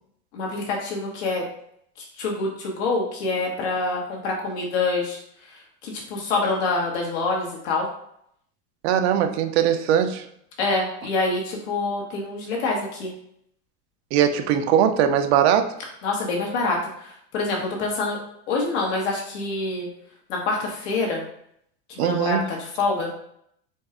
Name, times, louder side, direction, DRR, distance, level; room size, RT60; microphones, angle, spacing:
voice 1, 0.3-1.4 2.2-5.2 5.8-7.9 10.6-13.1 16.0-18.2 18.5-19.9 20.3-21.2 21.9-23.1, left 3 dB, 70° left, -1 dB, 1.6 m, -26 dB
voice 2, 8.8-10.3 14.1-15.7 22.0-22.4, right 9 dB, 70° right, 8 dB, 0.6 m, -20 dB
4.5 x 2.5 x 4.4 m, 0.71 s
supercardioid pair, 175°, 34 cm